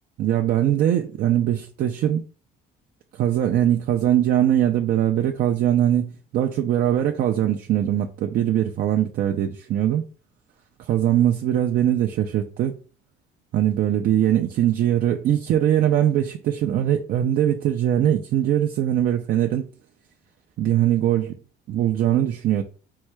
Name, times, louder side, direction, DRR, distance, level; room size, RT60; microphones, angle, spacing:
voice 1, 0.2-2.2 3.2-10.0 10.9-12.8 13.5-19.7 20.6-21.4 21.7-22.6, right 11 dB, 60° right, 0.5 m, -21 dB
4.6 x 2.1 x 4.5 m
cardioid pair, 110°, 17 cm